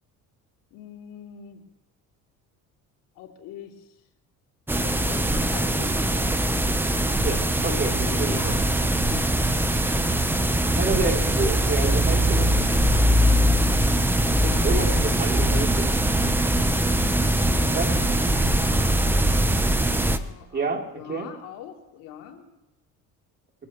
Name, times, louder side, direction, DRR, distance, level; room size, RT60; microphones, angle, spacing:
voice 1, 0.7-1.6 3.1-4.0 4.8-6.7 7.7-9.3 17.1-19.3 20.1-22.4, left 8 dB, 85° left, 1 dB, 3.1 m, -42 dB
sound 1, 4.7-20.2, right 1 dB, 5° right, 0.9 m, -22 dB
voice 2, 7.1-8.5 10.8-12.6 14.4-16.0 17.7-17.9 20.5-21.3, right 3 dB, 30° right, 2 dB, 3.3 m, -29 dB
23.0 x 15.5 x 3.1 m, 0.96 s
cardioid pair, 120°, 32 cm